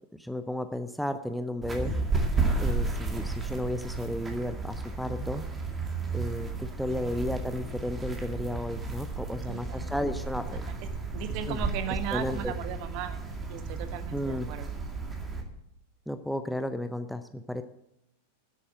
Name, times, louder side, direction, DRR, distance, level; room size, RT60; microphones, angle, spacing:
voice 1, 0.1-2.0 2.6-5.4 6.1-10.7 11.5-11.6 12.1-12.5 14.1-14.5 16.1-17.6, left 1 dB, ahead, 9 dB, 0.6 m, -33 dB
sound 1, 1.6-15.4, right 3 dB, 15° right, 2.1 m, -33 dB
voice 2, 6.9-7.3 9.5-10.1 10.8-10.9 11.1-14.7, right 9 dB, 45° right, 9 dB, 1.3 m, -37 dB
10.5 x 8.5 x 7.7 m, 0.84 s
figure-of-eight pair, 90°, 0 cm